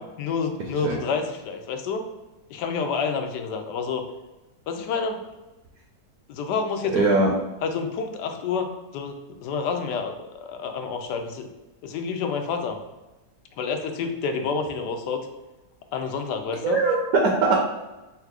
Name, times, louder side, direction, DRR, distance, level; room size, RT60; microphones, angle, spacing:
voice 1, 0.2-2.1 2.5-4.1 4.7-5.2 6.3-7.0 7.6-11.5 11.8-12.8 13.6-15.2 15.9-16.8, left 5 dB, 85° left, 5 dB, 1.2 m, -28 dB
voice 2, 6.9-7.3 16.6-17.5, right 3 dB, 70° right, -1 dB, 1.0 m, -20 dB
3.5 x 2.4 x 4.5 m, 1.1 s
omnidirectional pair, 1.8 m